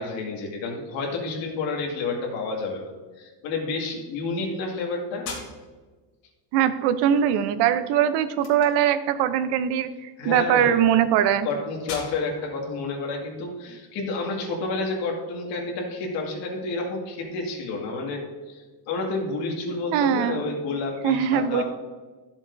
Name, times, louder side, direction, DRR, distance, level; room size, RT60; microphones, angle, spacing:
voice 1, 0.0-5.4 10.2-10.9 11.4-21.6, left 3 dB, 85° left, 0 dB, 2.2 m, -30 dB
sound 1, 5.2-14.1, left 4 dB, 70° left, 2.9 m, -45 dB
voice 2, 6.5-11.5 19.9-20.4 21.0-21.6, right 9 dB, 70° right, 12 dB, 0.7 m, -21 dB
12.5 x 7.1 x 2.7 m, 1.3 s
cardioid pair, 165°, 42 cm